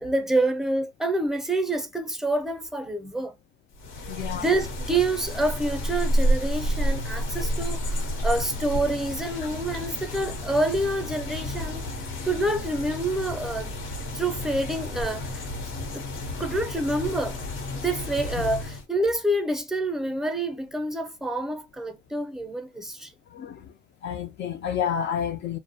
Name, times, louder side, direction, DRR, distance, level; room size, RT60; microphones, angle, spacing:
voice 1, 0.0-3.3 4.3-11.8 12.2-13.7 14.1-15.5 15.9-16.0 16.4-17.4 17.7-23.1, right 2 dB, ahead, 0.6 m, -27 dB
sound 1, 3.7-18.8, equal, 85° left, 0.9 m, -30 dB
voice 2, 4.1-4.5 16.2-16.3 23.3-23.7 24.0-25.6, left 8 dB, 60° left, 0.4 m, -30 dB
2.3 x 2.1 x 2.6 m
cardioid pair, 90°, 20 cm